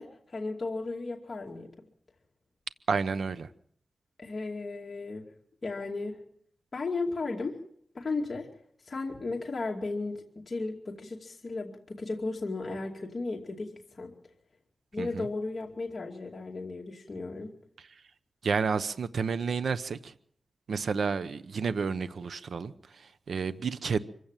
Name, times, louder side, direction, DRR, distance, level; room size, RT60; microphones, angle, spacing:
voice 1, 0.0-1.7 4.2-5.3 5.6-6.2 6.7-7.6 7.9-8.5 8.8-14.2 14.9-17.6, left 3 dB, 45° left, 2.5 m, -35 dB
voice 2, 2.9-3.5 15.0-15.3 18.4-20.1 20.7-24.0, right 5 dB, 80° right, 0.8 m, -30 dB
25.0 x 16.0 x 7.4 m
wide cardioid pair, 85°, 0 cm